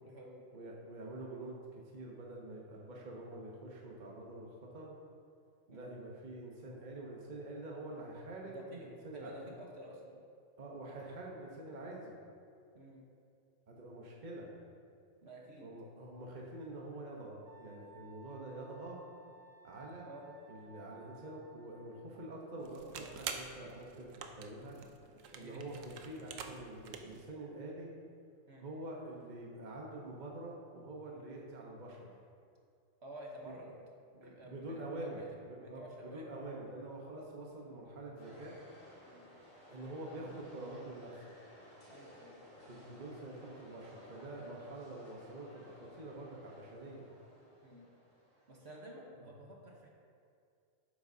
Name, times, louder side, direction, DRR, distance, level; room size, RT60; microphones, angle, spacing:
voice 1, 0.0-0.5 5.7-5.9 8.4-8.9 9.1-10.2 12.7-13.0 15.2-15.7 20.0-20.3 25.4-25.8 28.5-28.6 33.0-33.8 34.1-35.3 35.6-36.7 39.0-39.3 41.9-42.5 44.4-44.6 47.6-47.9 48.5-49.9, right 1 dB, 55° right, -2 dB, 1.4 m, -51 dB
voice 2, 0.5-5.0 5.7-9.6 10.6-12.1 13.7-14.5 15.6-19.0 19.6-20.1 20.5-24.1 24.4-24.8 25.3-27.9 28.6-32.1 34.2-38.6 39.7-41.2 42.7-47.1 49.2-49.3, right 2 dB, 40° right, -2 dB, 1.1 m, -46 dB
Wind instrument woodwind instrument, 17.4-22.4, right 4 dB, 15° right, 1.4 m, -59 dB
sound 1, 22.6-27.2, right 6 dB, 75° right, 1.1 m, -47 dB
sound 2, 38.2-48.8, left 1 dB, 80° left, 2.6 m, -58 dB
11.5 x 8.5 x 2.8 m, 2.3 s
omnidirectional pair, 1.4 m